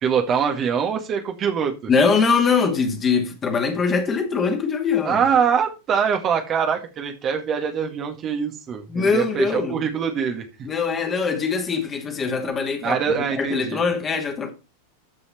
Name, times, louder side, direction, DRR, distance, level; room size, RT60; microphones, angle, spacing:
voice 1, 0.0-1.7 5.1-10.4 12.8-13.8, right 7 dB, 30° right, 2.0 m, -23 dB
voice 2, 1.9-5.2 8.9-9.8 10.6-14.5, left 5 dB, 20° left, 2.5 m, -22 dB
13.5 x 5.6 x 4.3 m
figure-of-eight pair, 90°, 0 cm